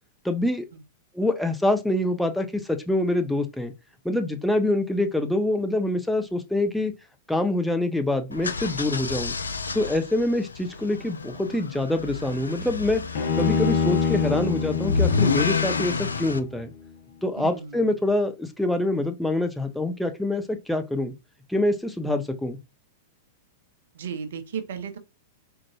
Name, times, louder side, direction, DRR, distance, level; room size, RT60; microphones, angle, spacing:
voice 1, 0.2-0.7 1.1-3.7 4.0-6.9 7.3-9.4 9.7-13.0 13.4-16.7 17.2-21.1 21.5-22.6, left 1 dB, 5° left, 0.5 m, -25 dB
sound 1, 8.3-16.4, left 4 dB, 80° left, 0.3 m, -29 dB
Bowed string instrument, 13.1-16.4, left 6 dB, 55° left, 0.7 m, -26 dB
voice 2, 17.4-17.9 23.9-25.0, right 7 dB, 60° right, 0.6 m, -34 dB
3.8 x 2.2 x 3.0 m
figure-of-eight pair, 95°, 0 cm